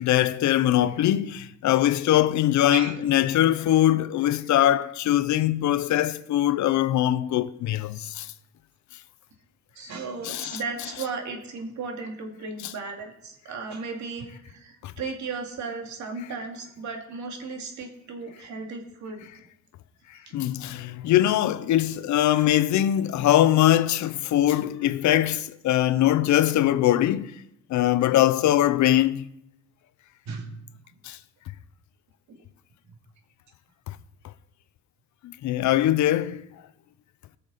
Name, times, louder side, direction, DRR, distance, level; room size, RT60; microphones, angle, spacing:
voice 1, 0.0-8.3 10.2-10.6 14.8-14.9 20.3-27.3 27.7-29.3 31.0-31.2 33.9-34.0 35.2-36.5, left 13 dB, 70° left, 0.6 m, -22 dB
voice 2, 9.8-19.3 20.3-20.4 20.6-20.7 22.4-22.5 30.3-30.6 32.3-32.4 32.9-33.0, right 4 dB, 70° right, 2.2 m, -35 dB
17.5 x 6.8 x 4.1 m
cardioid pair, 90°, 30 cm